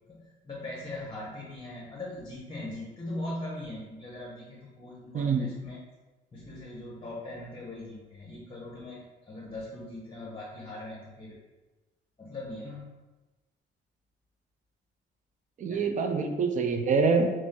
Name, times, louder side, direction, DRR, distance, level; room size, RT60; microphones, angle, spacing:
voice 1, 0.1-5.8 6.3-11.4 12.2-13.0 15.7-15.8, left 1 dB, 25° left, -4 dB, 0.8 m, -40 dB
voice 2, 5.1-5.5 15.6-17.3, right 4 dB, 40° right, 5 dB, 0.4 m, -25 dB
3.1 x 2.6 x 3.6 m, 1.2 s
cardioid pair, 90°, 20 cm